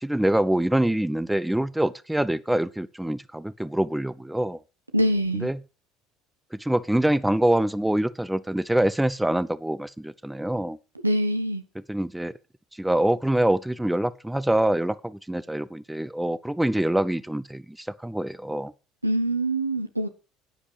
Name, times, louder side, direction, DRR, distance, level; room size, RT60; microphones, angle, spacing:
voice 1, 0.0-4.6 5.4-5.6 6.5-10.8 11.9-12.3 12.8-18.7, right 1 dB, 5° right, 0.7 m, -25 dB
voice 2, 4.9-5.5 11.0-11.6 19.0-20.1, right 1 dB, 90° right, 1.1 m, -24 dB
11.0 x 9.9 x 4.8 m
figure-of-eight pair, 60°, 0 cm